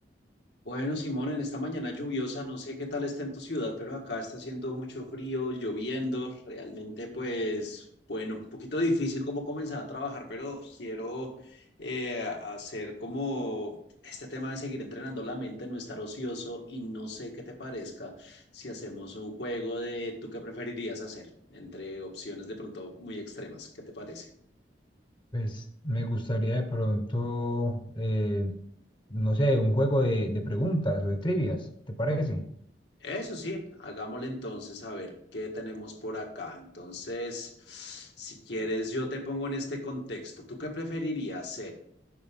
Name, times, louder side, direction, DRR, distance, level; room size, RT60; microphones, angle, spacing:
voice 1, 0.6-13.8 14.0-24.3 33.0-41.7, left 1 dB, 75° left, 2 dB, 1.7 m, -35 dB
voice 2, 25.3-28.5 29.1-32.4, equal, 30° left, 6 dB, 0.9 m, -28 dB
9.2 x 6.1 x 3.7 m, 0.69 s
head